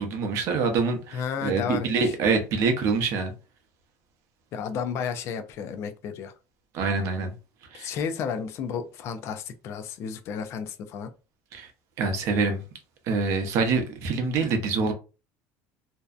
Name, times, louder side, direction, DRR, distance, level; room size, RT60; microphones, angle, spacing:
voice 1, 0.0-3.3 6.7-7.3 7.7-7.9 11.5-11.7 12.0-12.6 13.1-14.9, right 4 dB, 50° right, 0.6 m, -25 dB
voice 2, 1.1-2.1 4.5-6.3 7.7-11.1, left 7 dB, 45° left, 0.4 m, -32 dB
2.6 x 2.1 x 2.4 m
cardioid pair, 155°, 6 cm